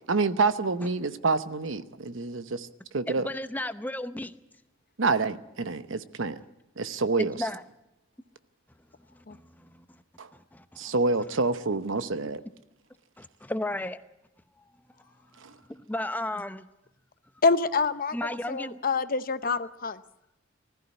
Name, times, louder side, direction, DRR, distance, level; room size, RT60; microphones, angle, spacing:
voice 1, 0.1-2.7 2.9-3.3 5.0-6.4 6.8-7.4 10.2-10.3 10.8-12.4 15.4-15.5, right 3 dB, 70° right, 12 dB, 0.9 m, -27 dB
voice 2, 3.1-4.3 7.2-7.6 9.1-10.0 10.3-10.9 13.2-14.0 15.5-16.7 18.1-18.8, left 1 dB, 10° left, 11 dB, 0.7 m, -34 dB
voice 3, 17.4-18.1 18.5-20.0, left 4 dB, 45° left, 12 dB, 0.8 m, -26 dB
20.0 x 14.5 x 9.8 m, 0.92 s
head